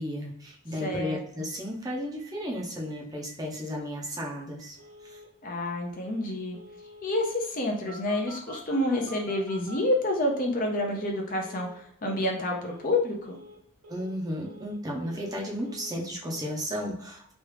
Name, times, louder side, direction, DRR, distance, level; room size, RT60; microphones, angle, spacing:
voice 1, 0.0-4.8 5.0-5.2 13.9-17.3, equal, 15° right, -2 dB, 0.6 m, -34 dB
voice 2, 0.8-1.2 5.4-6.6 7.0-13.4, left 1 dB, 40° left, 1 dB, 0.6 m, -28 dB
Telephone, 1.1-1.2 1.5-1.6 1.8-1.9 2.2-2.6 2.9-3.0 3.3-3.6 4.0-4.1 4.6-5.3 6.0-6.3 6.5-7.3 7.9-10.6 10.8-11.2 11.4-11.8 12.0-12.4 12.6-13.0 13.2-13.6 13.8-14.2 14.4-15.4 15.6-16.0 16.2-16.5, equal, 70° right, 0.9 m, -48 dB
3.0 x 2.4 x 3.2 m, 0.66 s
head